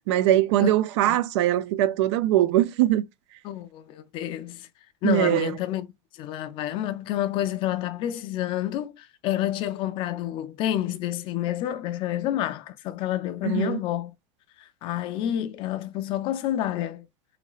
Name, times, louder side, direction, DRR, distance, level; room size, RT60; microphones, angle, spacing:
voice 1, 0.1-3.0 5.0-5.5 13.4-13.8, right 13 dB, 75° right, 0.5 m, -21 dB
voice 2, 3.4-4.7 5.0-5.9 6.1-14.1 14.6-17.1, left 12 dB, 35° left, 0.3 m, -29 dB
3.8 x 3.1 x 2.4 m
supercardioid pair, 160°, 15 cm